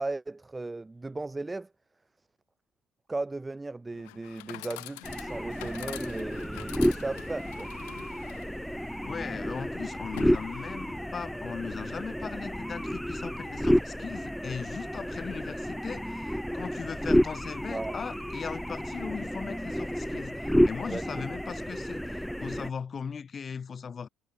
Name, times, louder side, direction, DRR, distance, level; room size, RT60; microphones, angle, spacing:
voice 1, 0.0-1.7 3.1-7.7 17.7-17.9 20.9-21.0, right 2 dB, 15° right, 1.1 m, -36 dB
Chatter / Coin (dropping), 3.9-10.9, left 37 dB, 85° left, 4.5 m, -47 dB
sound 1, 5.0-22.7, equal, ahead, 0.5 m, -31 dB
sound 2, 6.0-13.8, left 14 dB, 70° left, 5.2 m, -60 dB
voice 2, 9.0-24.1, left 6 dB, 40° left, 0.9 m, -38 dB
supercardioid pair, 75°, 0 cm